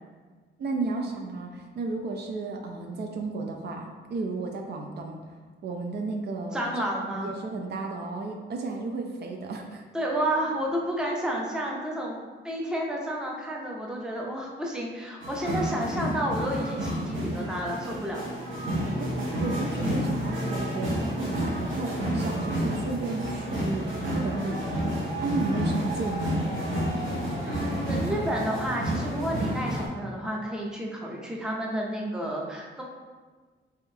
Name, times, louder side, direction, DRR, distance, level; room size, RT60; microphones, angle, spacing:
voice 1, 0.6-5.2 5.6-6.8 7.1-9.8 18.8-24.9 25.2-26.5, right 3 dB, 60° right, 2 dB, 0.4 m, -33 dB
voice 2, 6.5-7.3 9.9-12.2 12.4-18.2 27.5-32.8, equal, 5° right, -2 dB, 0.5 m, -31 dB
sound 1, 15.2-29.9, equal, 80° right, 1.0 m, -30 dB
3.5 x 3.4 x 2.7 m, 1.4 s
wide cardioid pair, 135°, 20 cm